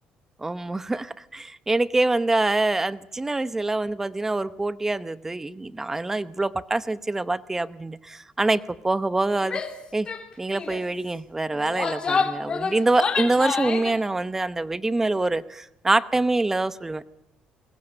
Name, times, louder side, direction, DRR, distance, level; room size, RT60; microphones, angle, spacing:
voice 1, 0.4-9.6 9.9-10.1 10.4-17.0, right 2 dB, 15° right, 16 dB, 0.8 m, -25 dB
Female speech woman speaking / Yell, 9.5-9.8 10.1-10.2 10.5-10.8 11.5-14.0, left 5 dB, 35° left, 3.3 m, -28 dB
21.5 x 21.0 x 8.9 m, 0.85 s
cardioid pair, 100°, 3 cm